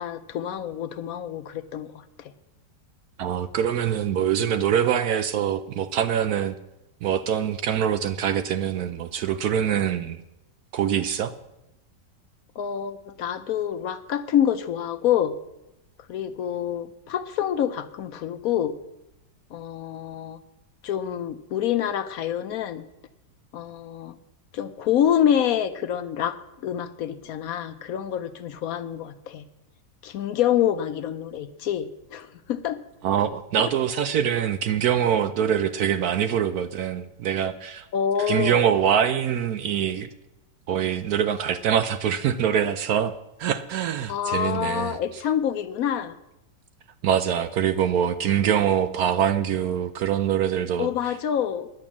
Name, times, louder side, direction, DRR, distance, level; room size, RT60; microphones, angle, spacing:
voice 1, 0.0-2.3 12.6-15.3 16.1-18.7 19.5-20.4 20.8-22.8 23.5-24.1 24.5-29.4 30.0-32.8 37.9-38.6 44.1-46.2 50.8-51.7, left 9 dB, 70° left, 11 dB, 0.9 m, -27 dB
voice 2, 3.2-6.6 7.0-10.2 10.7-11.3 33.0-37.9 38.2-40.1 40.7-43.1 43.4-45.2 47.0-51.2, right 9 dB, 70° right, 11 dB, 0.9 m, -24 dB
10.5 x 8.9 x 7.2 m, 0.92 s
omnidirectional pair, 1.9 m